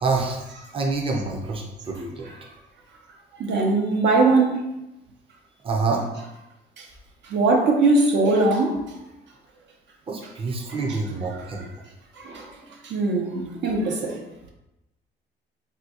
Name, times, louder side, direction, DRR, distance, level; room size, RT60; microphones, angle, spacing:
voice 1, 0.0-0.5 0.7-2.3 5.6-6.0 10.1-11.7, right 3 dB, 30° right, 0.6 m, -27 dB
voice 2, 3.4-4.5 6.8-6.9 7.3-8.8 10.7-11.0 12.2-12.5 12.8-14.1, right 3 dB, 70° right, 0.6 m, -21 dB
3.6 x 2.2 x 2.8 m
cardioid pair, 90°, 19 cm